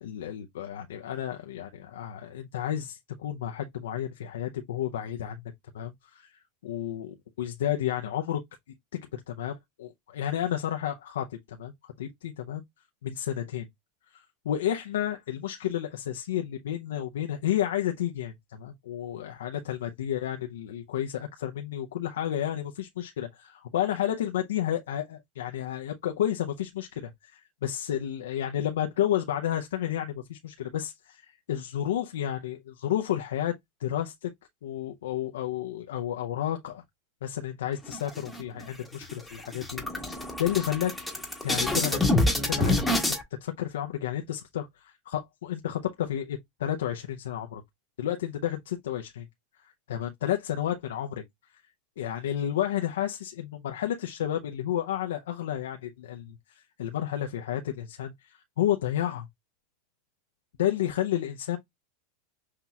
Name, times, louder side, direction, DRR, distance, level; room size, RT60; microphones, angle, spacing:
voice 1, 0.0-5.4 5.7-6.3 6.6-8.4 9.3-12.6 13.0-13.7 14.1-33.5 33.8-34.3 34.6-36.8 37.2-40.9 41.4-42.0 42.5-47.6 48.0-49.3 49.9-51.2 52.0-59.2 60.6-61.6, left 11 dB, 90° left, 0.5 m, -31 dB
sound 1, 37.9-38.6 39.0-39.1 39.4-43.2, left 1 dB, ahead, 1.3 m, -26 dB
5.7 x 2.8 x 2.3 m
supercardioid pair, 130°, 0 cm